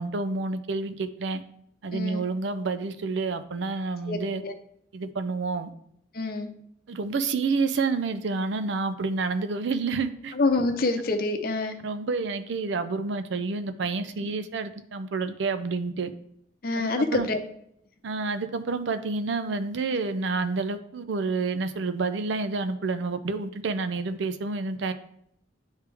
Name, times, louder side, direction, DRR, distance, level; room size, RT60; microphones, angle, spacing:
voice 1, 0.0-1.4 1.8-4.4 4.9-5.7 6.9-10.3 11.8-16.1 16.8-17.3 18.0-24.9, right 4 dB, 70° right, 10 dB, 0.5 m, -29 dB
voice 2, 1.9-2.2 4.1-4.5 6.1-6.6 10.3-11.8 14.2-14.3 16.6-17.4, left 3 dB, 50° left, 6 dB, 0.7 m, -27 dB
9.5 x 3.2 x 3.4 m, 0.73 s
head